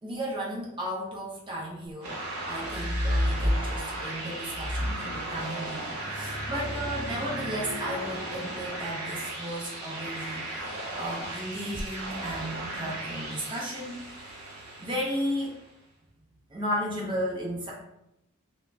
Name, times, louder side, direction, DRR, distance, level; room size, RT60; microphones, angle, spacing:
voice 1, 0.0-14.0 14.8-15.6 16.5-17.7, equal, 20° right, -3 dB, 0.5 m, -34 dB
sound 1, 2.0-15.7, right 2 dB, 85° right, 0.7 m, -37 dB
sound 2, 2.6-4.0 4.5-10.0 11.5-11.9, equal, 20° left, 0.6 m, -32 dB
2.4 x 2.1 x 3.2 m, 0.85 s
head